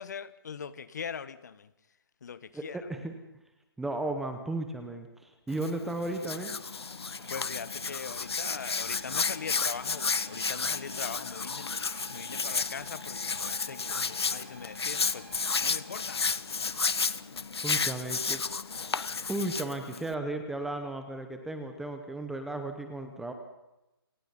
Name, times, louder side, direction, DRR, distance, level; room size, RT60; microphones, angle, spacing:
voice 1, 0.0-1.7 2.2-2.8 7.3-11.8 12.1-16.3, left 6 dB, 45° left, 1.3 m, -41 dB
voice 2, 2.5-3.1 3.8-6.5 17.6-18.4 19.3-23.3, right 2 dB, ahead, 0.8 m, -35 dB
Hands, 5.5-20.1, left 5 dB, 90° left, 1.2 m, -32 dB
sound 1, 6.0-16.8, right 3 dB, 30° right, 4.1 m, -52 dB
29.0 x 19.0 x 5.6 m
hypercardioid pair, 170°, 13 cm